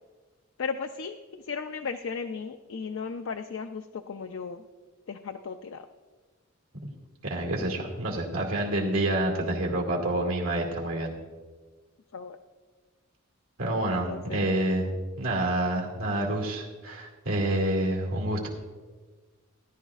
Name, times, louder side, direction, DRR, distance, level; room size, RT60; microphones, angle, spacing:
voice 1, 0.6-4.6 5.1-5.9 10.2-10.3 12.1-12.4 13.9-14.6, left 5 dB, 65° left, 6 dB, 0.4 m, -36 dB
voice 2, 7.2-11.2 13.6-14.9 15.2-18.5, right 1 dB, 85° right, -1 dB, 2.3 m, -28 dB
17.5 x 11.0 x 2.4 m, 1.4 s
head